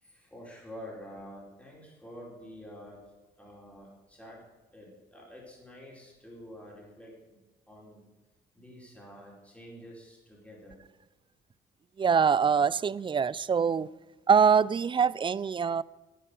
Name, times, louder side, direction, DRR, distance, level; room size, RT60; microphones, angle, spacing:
voice 1, 0.0-3.0 3.4-4.4 4.7-7.1 7.7-8.0 8.5-10.8, equal, 5° left, -4 dB, 4.5 m, -48 dB
voice 2, 12.0-13.9 14.3-15.8, right 6 dB, 25° right, 20 dB, 0.3 m, -24 dB
11.0 x 9.3 x 5.2 m, 1.2 s
cardioid pair, 90°, 20 cm